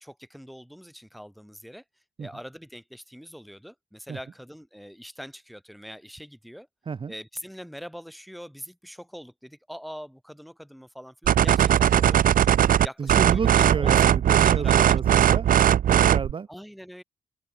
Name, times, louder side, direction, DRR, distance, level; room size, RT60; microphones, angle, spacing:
voice 1, 0.0-1.8 2.2-6.7 7.1-12.5 12.8-14.1 14.4-15.0 16.5-17.0, equal, ahead, 7.5 m, -43 dB
sound 1, 11.3-16.3, right 10 dB, 85° right, 0.9 m, -19 dB
voice 2, 13.0-15.5 15.9-16.5, right 6 dB, 40° right, 1.5 m, -30 dB
wide cardioid pair, 180°, 14 cm